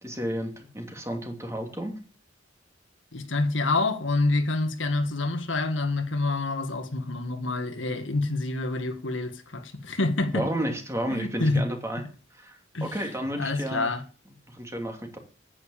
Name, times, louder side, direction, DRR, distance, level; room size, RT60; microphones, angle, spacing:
voice 1, 0.0-2.0 10.3-12.0 12.4-13.9 14.5-15.2, right 1 dB, 15° right, 2.8 m, -32 dB
voice 2, 3.1-10.5 11.1-11.7 12.7-12.9 13.4-14.0, left 2 dB, 80° left, 1.9 m, -27 dB
10.0 x 9.8 x 7.2 m
head